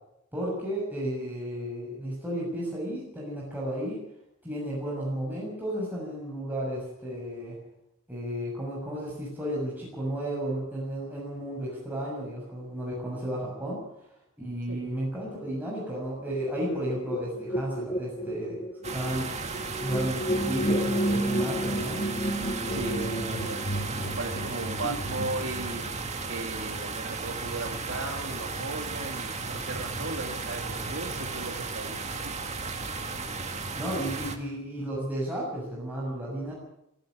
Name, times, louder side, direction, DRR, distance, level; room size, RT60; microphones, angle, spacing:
voice 1, 0.3-4.0 4.4-7.6 8.1-13.8 14.4-18.6 18.8-19.3 19.8-22.0 22.6-23.4 23.8-24.1 24.8-25.0 33.8-36.5, right 1 dB, 10° right, -5 dB, 6.7 m, -33 dB
sound 1, 16.3-25.8, right 1 dB, 30° left, 1.6 m, -32 dB
sound 2, 18.8-34.4, right 3 dB, 30° right, 2.1 m, -35 dB
voice 2, 22.7-25.9 26.3-32.0 32.2-32.5, right 2 dB, 60° right, 4 dB, 2.5 m, -37 dB
17.5 x 15.5 x 9.8 m, 0.82 s
head